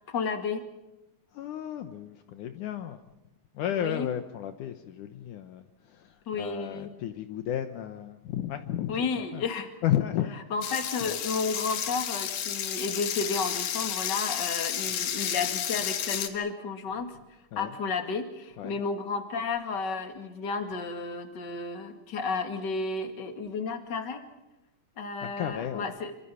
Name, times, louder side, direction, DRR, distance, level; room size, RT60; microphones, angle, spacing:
voice 1, 0.1-0.6 3.8-4.1 6.3-6.9 8.9-9.7 10.5-17.2 17.6-24.2 25.0-26.1, left 4 dB, 35° left, 6 dB, 2.5 m, -32 dB
voice 2, 1.3-3.0 3.5-9.0 9.3-9.4 9.8-10.4 11.0-11.2 14.9-15.0 17.5-17.7 18.6-18.8 25.2-25.9, left 11 dB, 70° left, 8 dB, 2.4 m, -33 dB
sound 1, 10.6-16.3, left 9 dB, 90° left, 3.4 m, -32 dB
27.5 x 25.5 x 5.7 m, 0.96 s
omnidirectional pair, 3.9 m